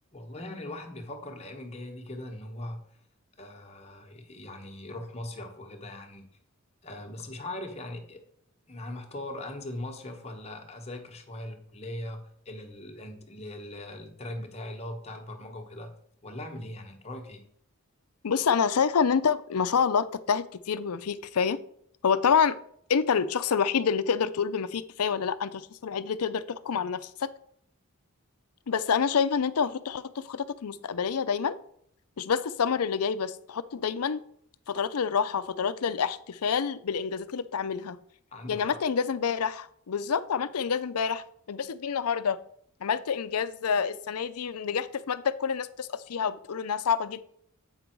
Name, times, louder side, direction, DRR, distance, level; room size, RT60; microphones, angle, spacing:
voice 1, 0.1-2.8 3.4-6.3 6.8-8.2 8.7-15.9 16.2-17.5 38.3-38.8, left 1 dB, 30° left, 4 dB, 1.1 m, -40 dB
voice 2, 18.2-21.6 22.0-22.5 22.9-27.3 28.7-31.6 32.2-34.2 34.7-38.0 38.5-42.4 42.8-47.3, left 6 dB, 85° left, 13 dB, 0.5 m, -27 dB
8.1 x 5.4 x 4.5 m, 0.66 s
head